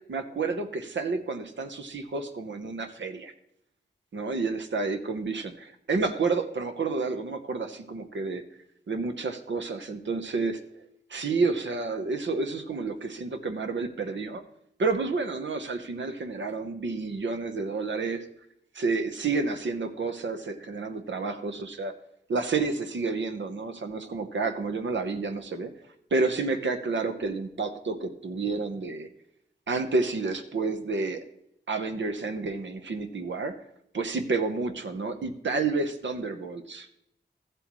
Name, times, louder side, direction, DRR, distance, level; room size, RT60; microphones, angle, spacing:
voice 1, 0.1-3.3 4.1-8.4 8.9-10.6 11.1-14.4 14.8-18.3 18.7-21.9 22.3-25.7 26.1-29.1 29.7-31.2 31.7-33.5 33.9-36.9, right 4 dB, 80° right, 7 dB, 0.9 m, -30 dB
14.0 x 7.8 x 3.1 m, 0.77 s
wide cardioid pair, 60°, 19 cm